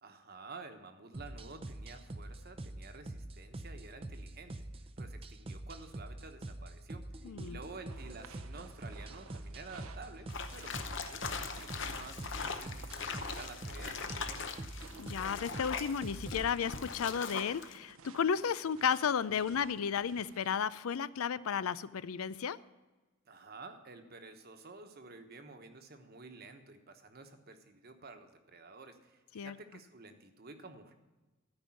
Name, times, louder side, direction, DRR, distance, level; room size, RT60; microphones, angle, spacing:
voice 1, 0.0-14.5 23.3-30.9, right 3 dB, 45° right, 7 dB, 1.1 m, -51 dB
sound 1, 1.1-16.5, right 1 dB, 25° right, 0.5 m, -45 dB
voice 2, 7.2-7.6 15.0-22.6 29.3-29.6, left 7 dB, 90° left, 17 dB, 0.4 m, -33 dB
sound 2, 7.9-20.6, right 5 dB, 85° right, 0.7 m, -56 dB
sound 3, 10.3-17.8, left 5 dB, 60° left, 0.8 m, -41 dB
13.0 x 5.4 x 8.7 m, 1.2 s
head